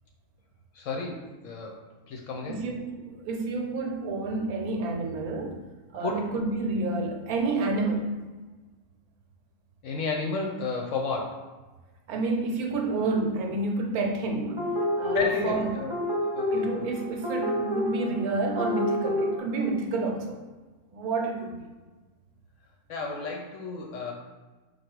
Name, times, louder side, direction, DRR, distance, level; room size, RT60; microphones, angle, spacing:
voice 1, 0.8-1.8 2.1-2.6 6.0-6.3 9.8-11.5 15.1-15.9 16.3-16.8 22.9-24.1, left 3 dB, 65° left, 0 dB, 0.8 m, -31 dB
voice 2, 2.5-5.6 5.9-8.1 12.1-14.7 15.0-15.7 16.5-20.4 20.9-21.7, right 3 dB, 75° right, 2 dB, 1.1 m, -29 dB
sound 1, 14.6-19.4, left 1 dB, 30° right, 0.5 m, -29 dB
4.5 x 2.3 x 4.5 m, 1.2 s
omnidirectional pair, 1.6 m